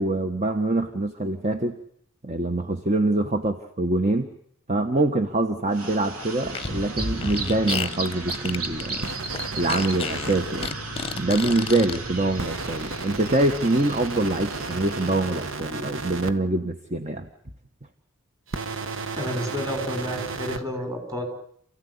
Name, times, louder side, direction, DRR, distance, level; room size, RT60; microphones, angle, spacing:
voice 1, 0.0-1.8 2.2-4.3 4.7-9.1 9.5-10.7 11.1-17.3, right 2 dB, 30° right, 7 dB, 1.3 m, -24 dB
sound 1, 5.7-15.6, right 3 dB, 85° right, 3.5 m, -35 dB
Fart, 6.4-12.0, left 5 dB, 25° left, 1.0 m, -31 dB
sound 2, 9.0-10.7 12.4-16.3 18.5-20.6, right 4 dB, 60° right, 1.3 m, -34 dB
voice 2, 19.1-21.3, left 1 dB, 15° right, 3 dB, 5.8 m, -30 dB
28.5 x 16.0 x 9.9 m, 0.68 s
head